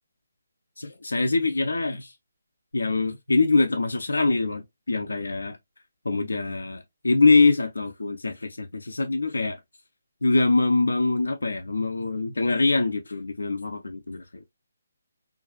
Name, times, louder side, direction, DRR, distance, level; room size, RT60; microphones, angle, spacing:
voice 1, 0.8-2.1 2.7-5.6 6.1-9.6 10.2-14.2, left 3 dB, 85° left, 0.4 m, -23 dB
2.6 x 2.4 x 2.3 m
figure-of-eight pair, 150°, 0 cm